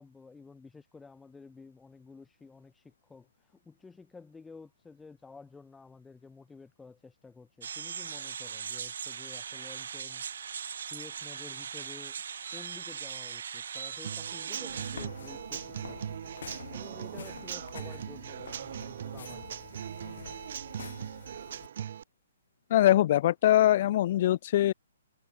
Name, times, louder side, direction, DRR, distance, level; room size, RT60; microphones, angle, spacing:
voice 1, 0.0-10.2 10.9-12.2 12.5-16.4 16.7-19.9, left 4 dB, 5° left, 2.0 m, -51 dB
Fredy Olejua, 7.6-15.1, right 7 dB, 65° right, 1.2 m, -39 dB
Human voice / Acoustic guitar / Drum, 14.0-22.0, right 9 dB, 50° right, 0.7 m, -40 dB
sound 1, 14.7-21.7, left 7 dB, 70° left, 3.5 m, -47 dB
voice 2, 22.7-24.7, left 13 dB, 35° left, 0.5 m, -22 dB
hypercardioid pair, 170°, 0 cm